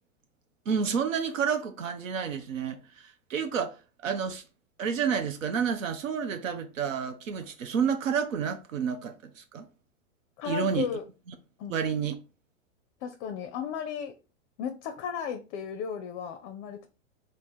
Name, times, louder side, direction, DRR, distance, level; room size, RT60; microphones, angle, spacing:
voice 1, 0.7-4.4 4.8-9.7 10.4-10.9 11.7-12.2, right 7 dB, 80° right, 0.6 m, -30 dB
voice 2, 10.4-11.0 11.6-11.8 13.0-14.1 14.6-16.9, left 8 dB, 40° left, 0.5 m, -34 dB
3.3 x 2.1 x 4.2 m
hypercardioid pair, 105°, 38 cm